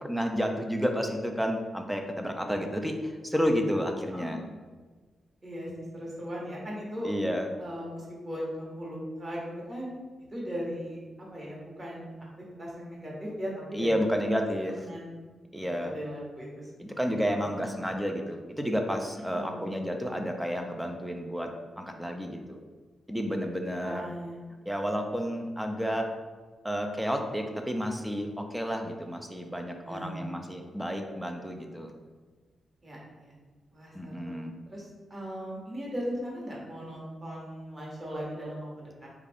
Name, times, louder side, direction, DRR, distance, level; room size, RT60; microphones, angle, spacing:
voice 1, 0.0-4.4 7.0-7.5 13.7-14.8 15.5-15.9 16.8-21.5 21.8-22.6 23.1-24.1 24.7-26.1 26.6-31.9 33.9-34.5, equal, 5° right, 3 dB, 0.4 m, -31 dB
voice 2, 5.4-7.1 7.6-9.9 10.3-12.1 12.6-14.0 14.5-15.3 15.6-17.0 17.3-17.4 19.3-19.7 23.8-24.4 29.8-30.2 32.8-33.3 33.7-34.3 34.7-39.1, equal, 30° right, -4 dB, 1.2 m, -38 dB
3.4 x 2.4 x 3.4 m, 1.4 s
cardioid pair, 75°, 0 cm